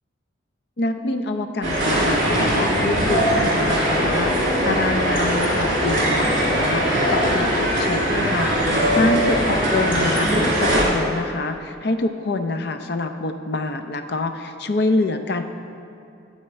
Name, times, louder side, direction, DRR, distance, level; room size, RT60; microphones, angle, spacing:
voice 1, 0.8-15.4, left 2 dB, 55° left, 8 dB, 0.6 m, -26 dB
sound 1, 1.6-10.8, equal, 45° right, 2.3 m, -20 dB
12.0 x 4.4 x 7.9 m, 2.6 s
head